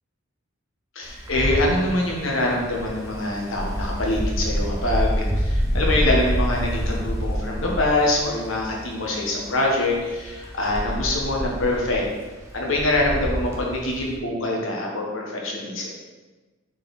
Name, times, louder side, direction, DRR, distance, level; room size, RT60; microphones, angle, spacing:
voice 1, 0.9-12.0 12.5-15.9, left 1 dB, 75° left, -2 dB, 1.4 m, -24 dB
Wind, 1.0-14.2, equal, 15° right, 0.9 m, -27 dB
6.5 x 4.2 x 4.2 m, 1.3 s
head